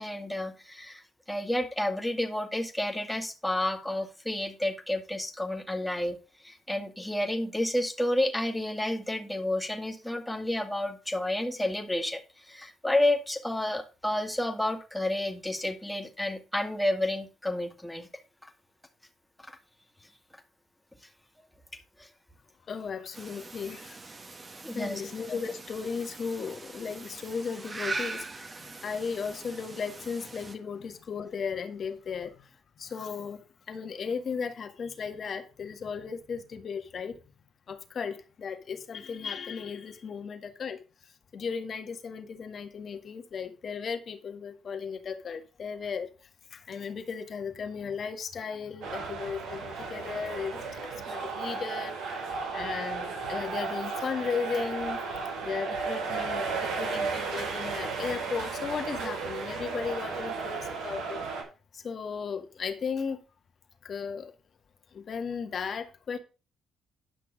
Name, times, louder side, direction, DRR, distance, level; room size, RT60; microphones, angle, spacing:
voice 1, 0.0-6.2 6.4-18.1 22.0-22.1 24.6-25.0, left 1 dB, 5° left, 2.3 m, -30 dB
voice 2, 22.7-24.1 24.7-32.5 32.8-37.2 37.7-40.8 41.3-46.1 46.5-55.0 55.4-61.2 61.7-63.2 63.8-64.4 64.9-66.2, left 6 dB, 50° left, 1.8 m, -36 dB
sound 1, 23.1-30.6, right 3 dB, 30° right, 1.8 m, -41 dB
sound 2, 48.8-61.4, right 4 dB, 85° right, 5.0 m, -34 dB
11.0 x 6.0 x 5.3 m
supercardioid pair, 75°, 0 cm